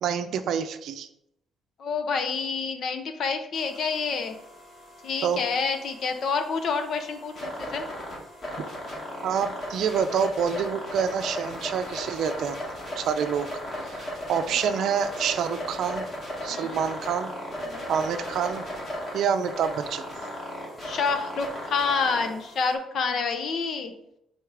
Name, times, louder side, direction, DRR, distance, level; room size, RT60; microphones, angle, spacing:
voice 1, 0.0-1.1 5.2-5.4 9.2-12.6 13.0-13.5 13.9-16.1 16.4-17.3 17.9-18.6 19.1-20.0, right 7 dB, 65° right, 9 dB, 0.5 m, -27 dB
voice 2, 1.8-4.3 5.0-7.9 14.5-14.6 16.5-16.8 17.6-17.9 20.8-23.9, left 5 dB, 50° left, 7 dB, 0.8 m, -28 dB
sound 1, 3.5-22.7, equal, 30° left, 2.1 m, -36 dB
8.2 x 4.3 x 3.4 m, 0.80 s
cardioid pair, 150°, 0 cm